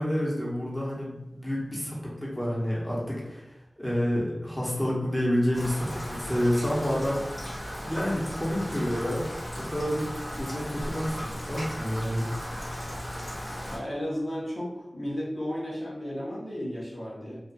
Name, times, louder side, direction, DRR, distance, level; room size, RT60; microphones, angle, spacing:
voice 1, 0.0-3.5 3.8-7.2 7.8-9.2 9.6-10.1 10.4-12.3, equal, 5° left, -6 dB, 0.8 m, -29 dB
Rain, 5.5-13.8, equal, 45° left, 1.1 m, -36 dB
voice 2, 13.7-17.4, equal, 65° left, -7 dB, 0.8 m, -34 dB
2.5 x 2.3 x 2.3 m, 0.93 s
wide cardioid pair, 45°, 0 cm